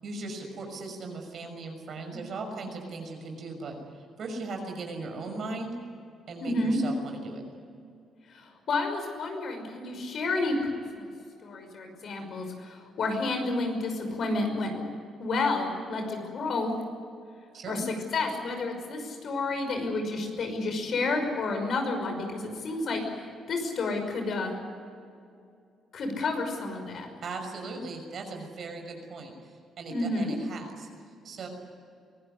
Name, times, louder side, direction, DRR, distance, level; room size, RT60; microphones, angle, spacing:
voice 1, 0.0-5.7 6.3-7.4 17.5-17.8 27.2-29.3 29.8-30.9 31.2-31.5, right 3 dB, 60° right, 4 dB, 6.2 m, -38 dB
voice 2, 6.4-6.8 8.3-10.6 10.9-11.1 11.4-14.9 15.2-16.7 17.7-24.5 25.9-27.1 29.9-30.3, left 3 dB, 60° left, 5 dB, 5.7 m, -30 dB
23.5 x 17.0 x 9.8 m, 2.4 s
cardioid pair, 90°, 0 cm